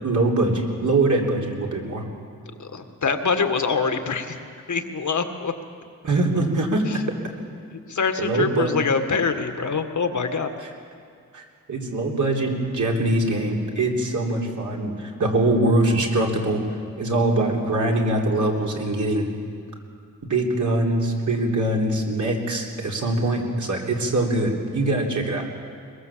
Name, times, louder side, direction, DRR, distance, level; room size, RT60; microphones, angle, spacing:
voice 1, 0.0-2.0 6.0-6.8 8.2-8.7 11.3-16.6 17.0-19.3 20.3-25.4, right 2 dB, 60° right, -1 dB, 3.8 m, -23 dB
voice 2, 2.6-4.4 4.7-5.5 6.9-7.0 7.9-10.5, left 5 dB, 55° left, 7 dB, 1.7 m, -24 dB
22.0 x 21.5 x 7.5 m, 2.2 s
wide cardioid pair, 105°, 34 cm